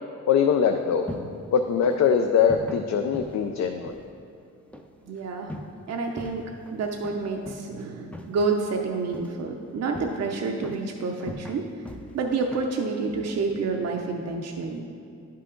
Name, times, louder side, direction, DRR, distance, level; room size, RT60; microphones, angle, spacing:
voice 1, 0.3-1.1 1.5-4.0, left 7 dB, 70° left, 5 dB, 0.5 m, -22 dB
sound 1, 0.6-14.1, left 1 dB, 5° left, 0.4 m, -43 dB
voice 2, 5.1-5.5 5.9-11.7 12.1-14.9, right 4 dB, 60° right, 2 dB, 0.6 m, -29 dB
10.5 x 5.7 x 3.8 m, 2.5 s
cardioid pair, 110°, 29 cm